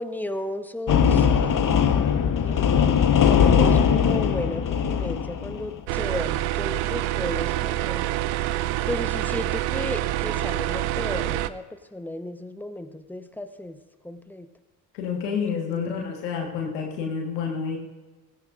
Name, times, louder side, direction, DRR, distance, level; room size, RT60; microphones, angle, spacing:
voice 1, 0.0-1.9 2.4-8.1 8.9-14.5 15.7-16.1, left 1 dB, 5° left, 9 dB, 1.0 m, -34 dB
sound 1, 0.9-5.7, left 7 dB, 40° left, 1.1 m, -20 dB
sound 2, 5.9-11.5, right 15 dB, 80° right, 0.6 m, -26 dB
voice 2, 14.9-17.8, left 6 dB, 85° left, 1 dB, 1.7 m, -29 dB
16.5 x 16.0 x 2.6 m, 1.2 s
hypercardioid pair, 40°, 49 cm